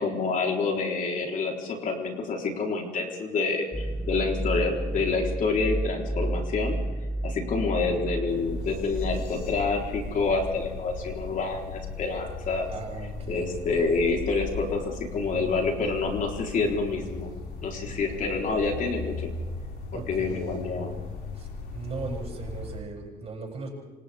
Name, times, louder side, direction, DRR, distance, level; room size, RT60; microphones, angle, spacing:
voice 1, 0.0-6.8 7.2-12.7 13.3-17.3 17.6-19.3 19.9-20.9, left 4 dB, 50° left, 1 dB, 4.2 m, -28 dB
sound 1, 3.7-10.8, right 1 dB, 5° left, 1.1 m, -32 dB
sound 2, 8.3-22.8, left 4 dB, 90° left, 6.0 m, -38 dB
voice 2, 12.7-13.5 17.9-18.0 19.9-20.4 21.3-23.7, right 4 dB, 40° right, -1 dB, 7.9 m, -38 dB
28.0 x 26.5 x 3.7 m, 1.3 s
cardioid pair, 110°, 17 cm